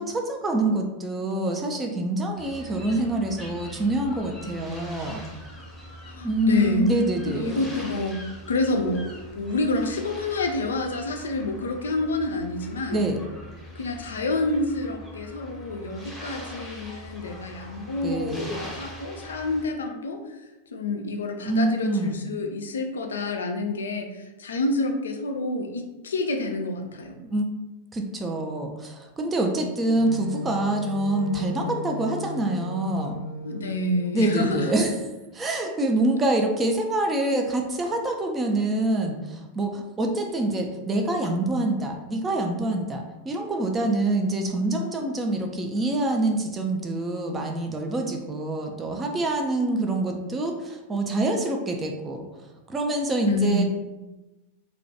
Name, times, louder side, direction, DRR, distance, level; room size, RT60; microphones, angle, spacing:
voice 1, 0.0-5.2 6.2-7.6 12.9-13.2 18.0-18.6 21.5-22.2 27.2-27.5 27.9-33.2 34.1-34.9 35.3-52.3 52.7-53.6, right 2 dB, 15° right, 2 dB, 0.3 m, -26 dB
sound 1, 2.4-19.7, equal, ahead, 0.7 m, -42 dB
voice 2, 6.1-6.9 7.3-9.1 9.3-13.1 13.8-20.2 20.7-27.2 33.4-34.7 53.3-53.6, left 2 dB, 65° left, 4 dB, 0.3 m, -28 dB
Wind instrument woodwind instrument, 29.9-34.6, left 2 dB, 75° right, 0.5 m, -36 dB
2.2 x 2.1 x 2.7 m, 1.1 s
figure-of-eight pair, 90°, 0 cm